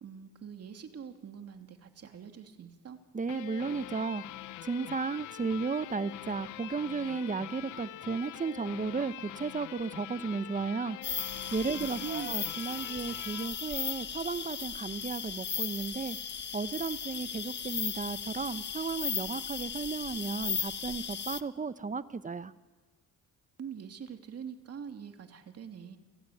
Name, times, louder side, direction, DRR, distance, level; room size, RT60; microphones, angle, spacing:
voice 1, 0.0-3.0 11.7-12.3 23.6-26.0, right 7 dB, 55° right, 6 dB, 2.8 m, -44 dB
voice 2, 3.1-4.2 4.6-11.0 11.5-16.2 16.5-22.5, right 4 dB, 25° right, 14 dB, 1.0 m, -34 dB
sound 1, 3.3-14.6, left 15 dB, 80° left, 0.7 m, -45 dB
sound 2, 11.0-21.4, left 7 dB, 35° left, 1.1 m, -36 dB
29.5 x 16.5 x 9.4 m, 1.3 s
cardioid pair, 90°, 30 cm